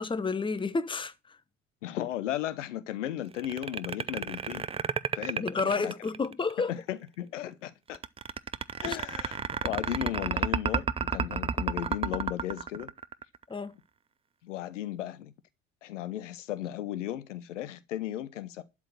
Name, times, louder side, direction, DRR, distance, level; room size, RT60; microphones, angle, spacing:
voice 1, 0.0-1.4 5.4-6.7 8.8-9.0 13.5-13.8, left 4 dB, 15° left, 1.1 m, -31 dB
voice 2, 1.8-4.7 5.1-5.9 6.7-8.0 8.8-10.9 11.1-12.9 14.4-15.3 15.8-18.6, left 12 dB, 75° left, 1.1 m, -35 dB
sound 1, 3.3-6.5 7.9-13.4, right 6 dB, 15° right, 0.5 m, -31 dB
12.0 x 4.5 x 7.6 m
figure-of-eight pair, 70°, 37 cm